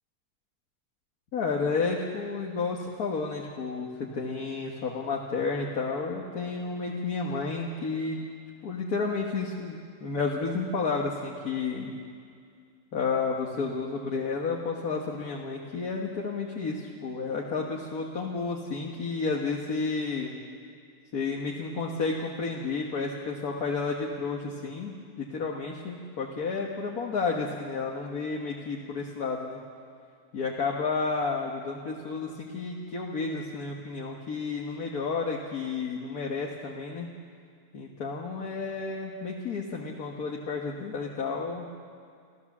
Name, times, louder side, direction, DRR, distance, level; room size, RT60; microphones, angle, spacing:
voice 1, 1.3-3.9 4.1-8.2 8.6-11.9 12.9-20.3 21.1-29.6 30.3-37.1 37.7-41.7, left 4 dB, 70° left, -1 dB, 1.9 m, -31 dB
29.5 x 14.0 x 7.3 m, 2.2 s
omnidirectional pair, 1.6 m